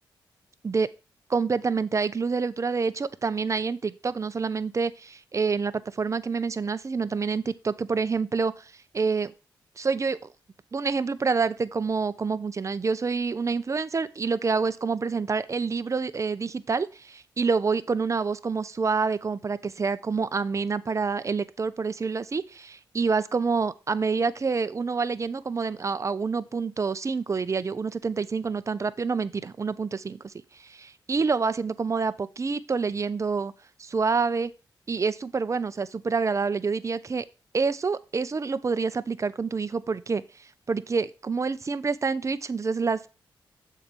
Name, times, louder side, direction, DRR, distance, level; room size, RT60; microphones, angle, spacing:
voice 1, 1.3-9.3 9.8-10.2 10.7-30.2 30.6-33.5 33.8-34.5 34.9-37.2 37.5-40.2 40.7-43.1, right 4 dB, 35° right, 14 dB, 0.6 m, -27 dB
7.1 x 4.6 x 5.1 m, 0.32 s
cardioid pair, 55°, 9 cm